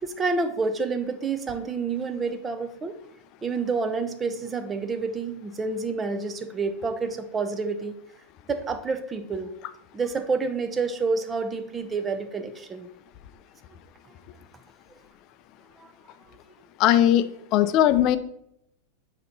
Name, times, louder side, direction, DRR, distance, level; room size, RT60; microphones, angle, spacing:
voice 1, 0.0-3.0 3.4-8.0 8.5-9.5 9.9-12.9 15.8-15.9, right 4 dB, 20° right, 9 dB, 0.6 m, -28 dB
voice 2, 16.8-18.2, left 11 dB, 45° left, 13 dB, 0.4 m, -19 dB
8.6 x 2.9 x 4.1 m, 0.76 s
supercardioid pair, 135°, 0 cm